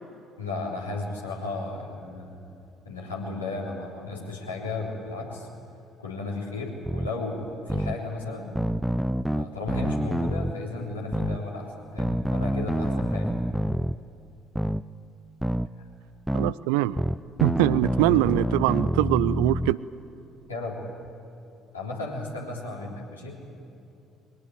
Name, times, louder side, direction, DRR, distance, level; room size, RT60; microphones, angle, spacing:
voice 1, 0.4-2.4 2.9-5.5 6.0-8.6 9.4-13.3 15.8-15.9 20.5-20.8 21.7-23.4, left 2 dB, 80° left, -3 dB, 3.6 m, -34 dB
sound 1, 6.8-7.1 7.7-8.0 8.6-10.5 11.1-11.4 12.0-14.0 14.5-14.8 15.4-15.7 16.3-16.5 17.0-19.7, equal, 5° right, 0.6 m, -27 dB
voice 2, 16.3-17.0 17.4-19.8, right 16 dB, 65° right, 18 dB, 0.5 m, -23 dB
22.5 x 18.5 x 9.6 m, 2.6 s
figure-of-eight pair, 50°, 0 cm